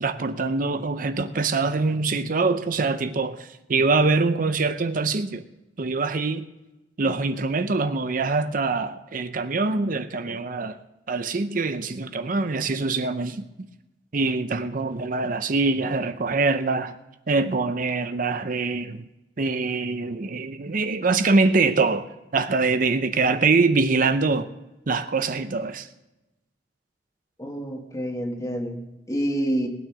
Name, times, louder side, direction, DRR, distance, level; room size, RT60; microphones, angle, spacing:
voice 1, 0.0-5.4 5.8-6.5 7.0-10.8 11.1-13.7 14.1-17.0 17.3-19.0 19.4-24.5 24.9-25.9, right 3 dB, 50° right, 0.6 m, -24 dB
voice 2, 27.4-29.7, right 1 dB, 20° left, 1.9 m, -28 dB
19.5 x 9.1 x 6.1 m
head